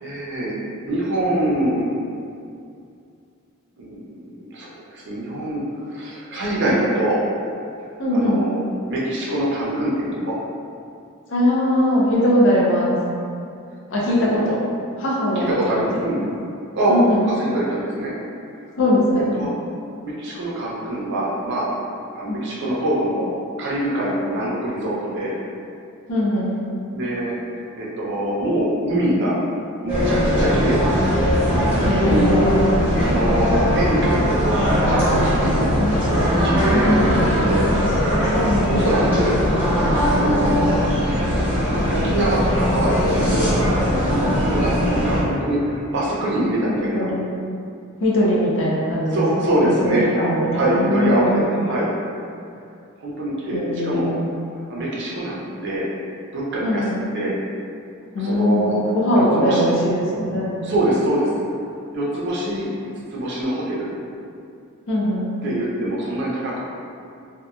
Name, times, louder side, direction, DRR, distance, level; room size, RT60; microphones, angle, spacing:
voice 1, 0.0-1.9 3.8-5.6 5.9-7.2 8.1-8.6 8.9-10.3 14.1-14.5 15.4-16.2 16.7-17.0 17.2-18.1 19.1-19.5 20.0-21.7 22.1-23.3 23.6-25.4 26.9-27.4 27.8-29.4 29.8-30.9 31.7-32.3 32.7-35.9 36.4-37.7 38.7-39.4 40.1-40.8 41.9-43.6 44.4-47.1 49.1-50.1 50.5-51.9 53.0-54.1 54.7-55.9 56.3-56.8 57.1-57.3 58.2-58.8 59.1-59.7 60.6-61.3 61.9-62.7 63.1-63.9 65.4-66.6, right 1 dB, 55° right, -6 dB, 0.5 m, -24 dB
voice 2, 8.0-8.4 11.3-13.0 13.9-14.6 15.0-15.5 16.2-16.3 16.9-17.2 18.8-19.4 22.3-22.4 26.1-26.6 31.8-32.9 35.8-36.0 36.7-37.2 38.4-38.9 46.9-47.3 48.0-49.2 49.6-51.4 53.5-54.4 56.6-57.0 58.1-60.6 64.9-65.3, left 1 dB, 55° left, -5 dB, 0.5 m, -21 dB
sound 1, 29.9-45.2, equal, 10° right, 0.7 m, -19 dB
2.8 x 2.2 x 2.4 m, 2.5 s
head